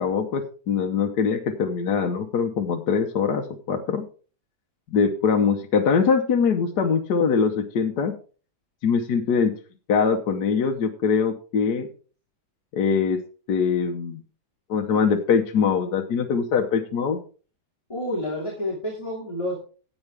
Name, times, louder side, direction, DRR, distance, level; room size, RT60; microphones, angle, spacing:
voice 1, 0.0-4.0 4.9-8.1 8.8-9.5 9.9-11.9 12.7-13.2 13.5-14.2 14.7-17.2, left 6 dB, 70° left, 3 dB, 1.6 m, -22 dB
voice 2, 17.9-19.5, left 1 dB, 20° left, -2 dB, 2.7 m, -29 dB
15.5 x 8.1 x 3.6 m, 0.39 s
omnidirectional pair, 1.8 m